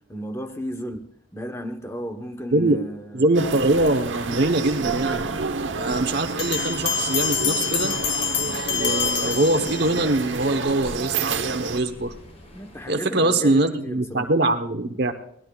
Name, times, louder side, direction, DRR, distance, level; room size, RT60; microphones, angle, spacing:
voice 1, 0.1-1.1 1.3-3.4 12.5-14.3, equal, 15° left, 1.1 m, -34 dB
voice 2, 3.1-5.3 5.8-7.9 8.7-12.1 12.9-15.1, right 2 dB, 60° right, 1.1 m, -23 dB
sound 1, 3.3-11.8, right 4 dB, 90° right, 1.1 m, -29 dB
sound 2, 3.7-12.9, equal, 35° left, 6.4 m, -45 dB
sound 3, 6.4-10.2, left 7 dB, 70° left, 2.8 m, -26 dB
23.5 x 18.5 x 2.4 m
head